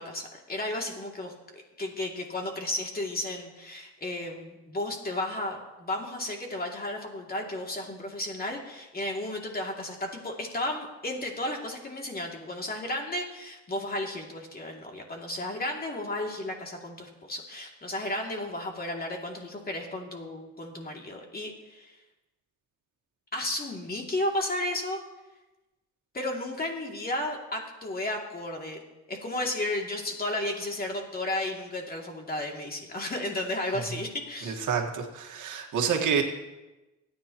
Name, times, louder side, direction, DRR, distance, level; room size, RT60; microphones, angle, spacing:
voice 1, 0.0-22.0 23.3-25.0 26.1-28.8 29.1-34.7, left 1 dB, 30° left, 1 dB, 2.6 m, -33 dB
voice 2, 34.4-36.2, right 7 dB, 75° right, 2 dB, 1.7 m, -28 dB
27.0 x 9.6 x 3.0 m, 1.1 s
cardioid pair, 90°, 30 cm